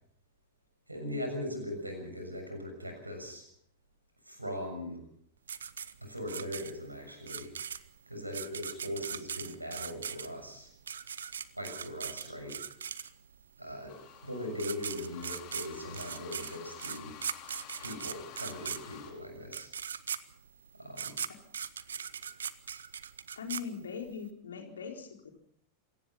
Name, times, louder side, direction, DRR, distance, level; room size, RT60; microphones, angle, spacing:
voice 1, 0.9-3.5 4.2-5.0 6.0-7.5 8.1-10.7 11.5-12.6 13.6-17.2 17.8-19.7 20.8-21.2, left 1 dB, 85° right, 5 dB, 6.8 m, -40 dB
sound 1, 5.5-13.4 14.2-14.3 14.5-24.2, right 7 dB, 70° right, 0.9 m, -40 dB
sound 2, 13.9-19.1, left 11 dB, 40° left, 4.5 m, -50 dB
voice 2, 23.4-25.3, left 6 dB, 70° left, 3 dB, 4.1 m, -41 dB
27.0 x 18.0 x 5.6 m, 0.64 s
figure-of-eight pair, 90°, 0 cm